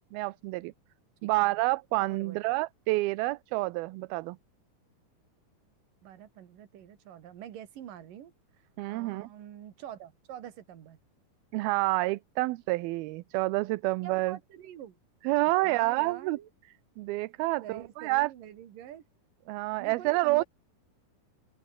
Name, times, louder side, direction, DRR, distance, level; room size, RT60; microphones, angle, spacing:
voice 1, 0.1-0.7 1.2-4.4 8.8-9.3 11.5-14.4 15.2-16.4 17.0-18.3 19.5-20.4, right 21 dB, 80° right, 2.4 m, -28 dB
voice 2, 2.1-2.5 6.0-8.3 8.9-11.0 14.0-15.0 15.6-16.5 17.6-19.0 19.8-20.4, right 10 dB, 60° right, 3.4 m, -45 dB
open air
omnidirectional pair, 4.6 m